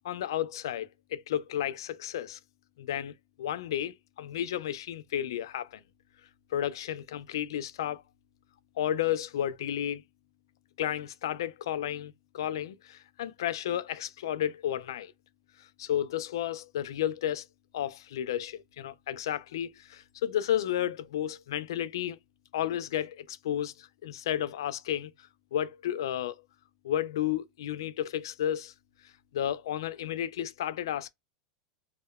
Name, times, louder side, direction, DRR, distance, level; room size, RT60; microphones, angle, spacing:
voice 1, 0.0-2.4 2.8-3.1 3.4-5.8 6.5-8.0 8.8-10.0 10.8-15.1 15.6-17.5 17.7-22.2 22.5-25.1 25.5-26.4 26.8-28.7 29.3-31.1, left 11 dB, 85° left, 0.3 m, -32 dB
2.8 x 2.1 x 2.2 m
supercardioid pair, 160°, 2 cm